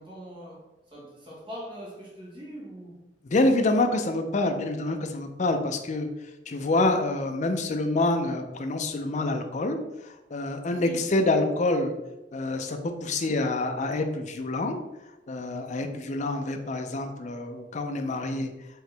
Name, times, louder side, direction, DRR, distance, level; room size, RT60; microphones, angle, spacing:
voice 1, 0.0-3.1 10.7-11.1, equal, 30° right, -5 dB, 1.4 m, -42 dB
voice 2, 3.3-6.1 6.5-9.8 10.0-12.0 12.3-14.8 15.3-18.5, left 2 dB, 40° left, 6 dB, 0.5 m, -27 dB
4.6 x 2.9 x 3.3 m, 0.97 s
head